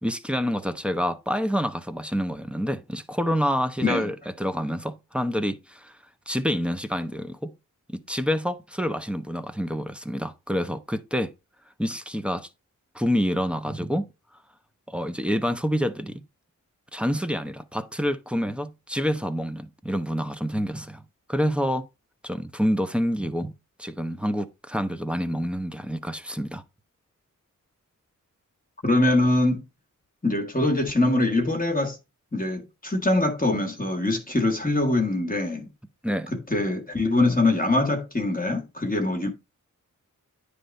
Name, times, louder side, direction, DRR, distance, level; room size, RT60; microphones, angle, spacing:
voice 1, 0.0-5.9 6.3-7.5 7.9-11.3 11.8-12.5 12.9-14.1 14.9-16.2 16.9-21.0 21.3-21.9 22.2-23.5 23.8-26.6 36.0-36.3, equal, 5° right, 0.9 m, -27 dB
voice 2, 3.8-4.1 28.8-29.6 30.2-32.0 32.3-35.7 36.3-39.3, left 2 dB, 25° left, 1.5 m, -23 dB
9.7 x 3.4 x 5.2 m
wide cardioid pair, 85°, 32 cm